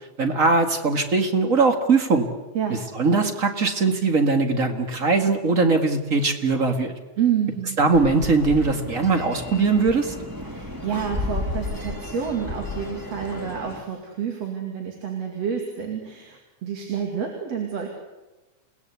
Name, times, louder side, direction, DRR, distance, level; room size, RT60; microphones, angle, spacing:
voice 1, 0.2-2.3 3.0-6.9 7.8-10.1, right 4 dB, 30° right, 6 dB, 1.8 m, -20 dB
voice 2, 7.2-7.8 10.4-17.9, right 8 dB, 55° right, 2 dB, 3.5 m, -28 dB
sound 1, 7.9-13.8, left 2 dB, 10° right, 1.7 m, -33 dB
28.5 x 19.0 x 8.3 m, 1.1 s
omnidirectional pair, 3.5 m